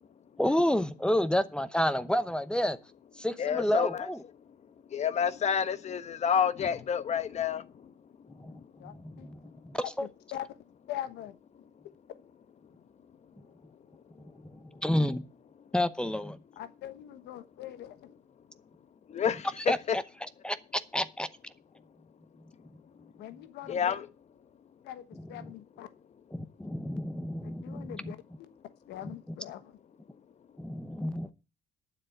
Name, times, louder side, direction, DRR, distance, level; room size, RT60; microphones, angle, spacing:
voice 1, 0.4-2.8 3.2-4.2 8.4-8.6 8.9-9.4 9.6-10.1 14.4-15.2 15.7-16.4 19.6-21.3 26.3-28.1 30.6-31.3, left 1 dB, 5° left, 0.8 m, -30 dB
voice 2, 3.4-4.1 4.9-7.9 19.1-19.5 19.9-20.0 23.7-24.1, left 7 dB, 40° left, 1.1 m, -29 dB
voice 3, 8.8-9.3 9.8-10.6 10.9-11.3 11.8-12.2 16.6-18.1 23.2-24.0 24.8-25.9 27.4-28.5 28.9-29.8, left 12 dB, 80° left, 1.2 m, -42 dB
9.6 x 7.5 x 7.9 m
cardioid pair, 110°, 17 cm